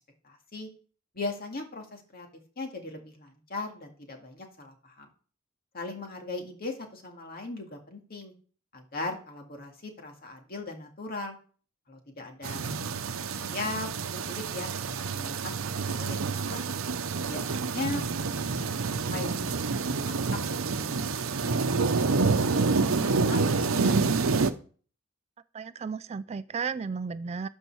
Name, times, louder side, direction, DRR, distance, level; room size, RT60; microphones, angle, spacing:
voice 1, 0.2-0.7 1.1-2.3 2.6-5.1 5.7-8.3 8.7-11.4 11.9-14.7 15.1-15.6 15.8-16.7 17.2-19.8 20.1-20.9 21.4-21.9 22.3-24.1, left 2 dB, 45° left, 3 dB, 2.1 m, -39 dB
sound 1, 12.4-24.5, right 4 dB, 85° right, 0.8 m, -28 dB
voice 2, 25.5-27.5, right 5 dB, 30° right, 14 dB, 0.3 m, -34 dB
12.5 x 5.4 x 4.7 m, 0.42 s
head